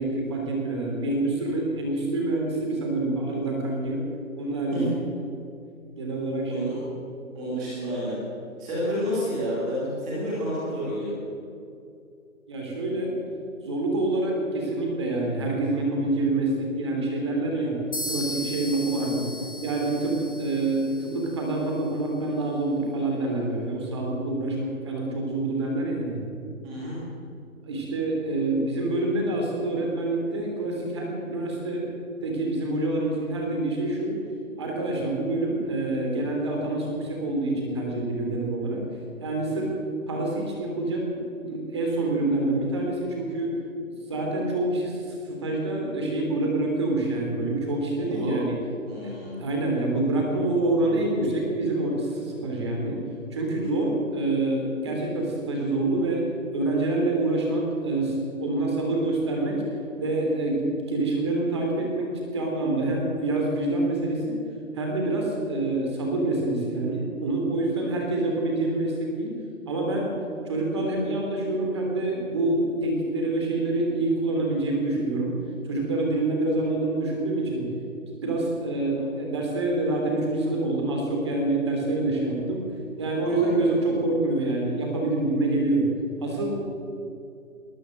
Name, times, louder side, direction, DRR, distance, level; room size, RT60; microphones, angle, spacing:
voice 1, 0.0-4.0 4.3-5.0 6.0-6.7 12.5-13.2 13.6-17.8 18.1-19.3 19.6-26.2 27.6-31.9 32.2-34.2 34.6-38.8 39.2-39.8 40.1-43.6 44.1-45.0 45.3-48.5 49.0-49.1 49.4-53.0 53.3-59.6 60.0-64.4 64.7-69.3 69.7-70.2 70.4-75.3 75.7-77.7 78.2-82.7 83.0-85.9 86.2-86.6, right 2 dB, 20° right, 0 dB, 3.4 m, -26 dB
voice 2, 6.5-6.8 7.3-8.1 8.6-11.1 26.6-26.9 48.1-48.3 48.9-49.3 83.2-83.7, equal, 5° right, -7 dB, 1.5 m, -30 dB
sound 1, 17.9-21.7, equal, 55° left, 3.4 m, -37 dB
20.5 x 18.0 x 7.8 m, 2.5 s
hypercardioid pair, 180°, 43 cm